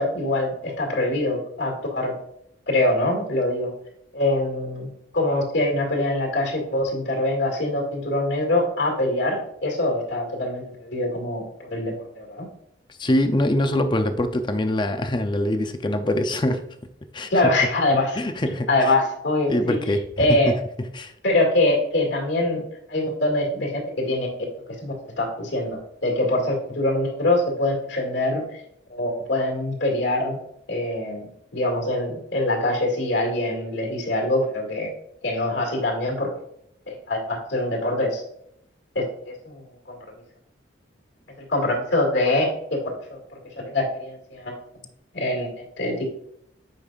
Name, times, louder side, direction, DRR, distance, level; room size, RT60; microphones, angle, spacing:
voice 1, 0.0-2.1 2.7-3.7 4.1-12.5 17.3-18.2 18.7-19.8 20.2-20.5 21.2-22.6 22.9-24.3 24.8-28.6 28.9-30.4 30.7-34.9 35.2-36.3 36.9-38.2 38.9-40.0 41.4-43.2 43.6-44.7 45.1-46.0, left 1 dB, 70° left, 2.3 m, -24 dB
voice 2, 13.0-16.7 17.1-17.3 17.9-18.7 19.5-21.1, left 1 dB, 25° left, 0.5 m, -24 dB
8.4 x 5.4 x 2.4 m
head